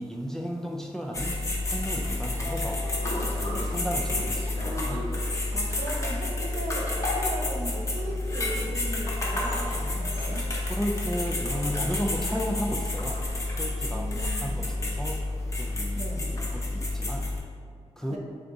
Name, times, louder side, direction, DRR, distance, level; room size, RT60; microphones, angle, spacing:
voice 1, 0.0-2.9 3.2-5.1 10.7-13.2 13.6-15.2 15.5-17.3 18.0-18.2, equal, 5° left, 0 dB, 0.3 m, -34 dB
sound 1, 1.1-17.4, left 2 dB, 25° left, 0.7 m, -30 dB
Train / Sliding door, 2.2-12.0, left 1 dB, 60° left, 0.9 m, -41 dB
voice 2, 5.5-10.5 13.9-14.6 15.9-16.3 18.1-18.2, right 1 dB, 80° right, -2 dB, 0.8 m, -37 dB
3.8 x 3.5 x 3.9 m, 2.2 s
wide cardioid pair, 150°, 12 cm